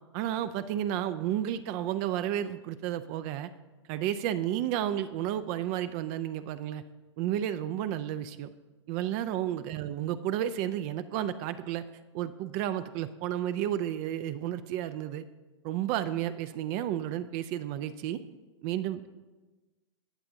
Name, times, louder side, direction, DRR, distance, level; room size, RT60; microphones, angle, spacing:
voice 1, 0.1-3.5 3.9-6.8 7.2-8.5 8.9-11.8 12.1-15.2 15.6-18.2 18.6-19.1, right 11 dB, 40° right, 12 dB, 0.4 m, -32 dB
20.0 x 6.7 x 2.7 m, 1.2 s
hypercardioid pair, 110°, 16 cm